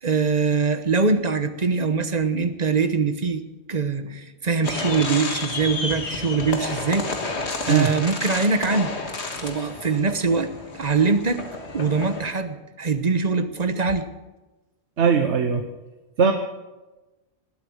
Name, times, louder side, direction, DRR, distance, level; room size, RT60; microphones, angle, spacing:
voice 1, 0.0-3.4 3.7-7.2 7.6-8.9 9.4-11.4 11.7-14.1, right 4 dB, 40° right, 10 dB, 1.1 m, -23 dB
sound 1, 4.6-12.3, left 3 dB, 80° left, 2.0 m, -31 dB
voice 2, 15.0-15.7 16.2-16.3, right 6 dB, 90° right, 5 dB, 1.3 m, -19 dB
19.0 x 8.5 x 7.8 m, 1.1 s
omnidirectional pair, 1.1 m